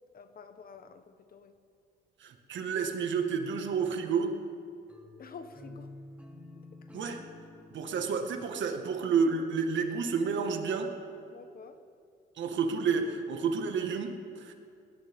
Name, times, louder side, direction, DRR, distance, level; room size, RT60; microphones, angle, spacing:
voice 1, 0.1-1.5 5.2-5.9 11.3-11.8, left 5 dB, 45° left, 9 dB, 1.2 m, -49 dB
voice 2, 2.2-4.3 6.9-7.2 7.7-10.9 12.4-14.5, right 5 dB, 70° right, 4 dB, 1.9 m, -30 dB
sound 1, 4.9-9.8, left 2 dB, 5° right, 2.7 m, -51 dB
19.5 x 19.5 x 3.7 m, 2.4 s
cardioid pair, 90°, 20 cm